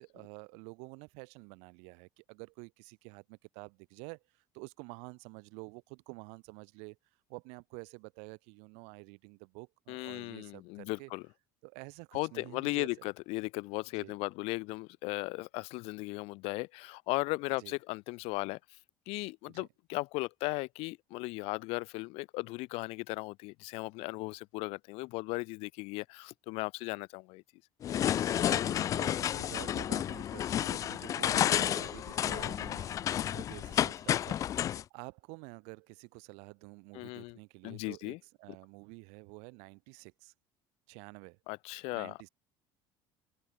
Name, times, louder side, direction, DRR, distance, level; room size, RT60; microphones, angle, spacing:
voice 1, 0.0-7.0 7.3-11.1 11.6-12.9 13.9-14.2 17.6-17.8 19.5-19.7 28.4-40.3 40.9-41.4 41.9-42.3, right 35 dB, 80° right, 3.4 m, -49 dB
voice 2, 9.9-11.2 12.1-18.6 19.1-27.4 36.9-37.4 37.6-38.2 41.5-42.2, left 24 dB, 65° left, 2.3 m, -37 dB
sound 1, 27.8-34.8, left 10 dB, 30° left, 0.6 m, -31 dB
open air
cardioid pair, 175°, 11 cm